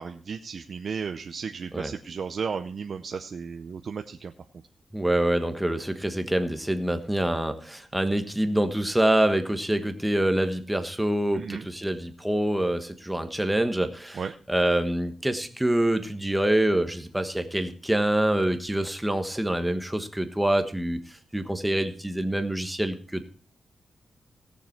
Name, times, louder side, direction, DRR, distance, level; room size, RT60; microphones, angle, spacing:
voice 1, 0.0-4.3 11.3-11.7 14.1-14.3, right 6 dB, 55° right, 6 dB, 0.7 m, -34 dB
voice 2, 4.9-14.2 14.5-23.2, right 1 dB, 5° right, 8 dB, 1.3 m, -26 dB
17.5 x 6.9 x 4.5 m, 0.39 s
wide cardioid pair, 110°, 0 cm